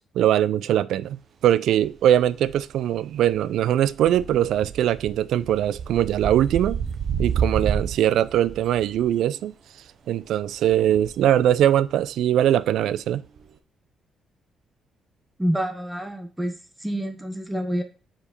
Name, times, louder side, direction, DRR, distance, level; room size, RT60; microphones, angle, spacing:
voice 1, 0.2-1.2 1.4-6.8 7.2-9.5 10.1-13.3, right 11 dB, 80° right, 0.3 m, -21 dB
sound 1, 1.8-1.9 2.2-3.0 3.3-9.2 10.2-11.8 13.4-13.5, right 7 dB, 60° right, 0.7 m, -30 dB
voice 2, 15.4-17.8, equal, 5° right, 0.9 m, -28 dB
4.8 x 4.4 x 5.0 m
cardioid pair, 90°, 0 cm